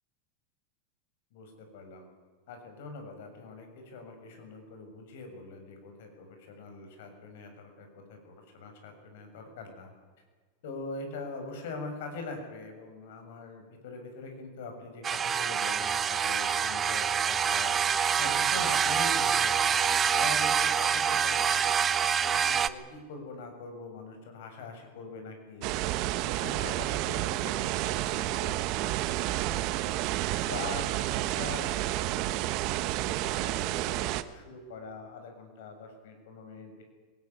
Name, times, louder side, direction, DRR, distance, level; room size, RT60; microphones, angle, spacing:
voice 1, 1.3-2.1 2.5-9.9 10.6-21.7 22.2-25.9 26.1-30.0 30.2-36.8, left 3 dB, 70° left, 5 dB, 7.1 m, -43 dB
sound 1, 15.0-22.7, right 7 dB, 25° right, 0.9 m, -26 dB
sound 2, 25.6-34.2, right 16 dB, 50° right, 1.1 m, -30 dB
20.5 x 18.5 x 9.8 m, 1.4 s
hypercardioid pair, 120°, 0 cm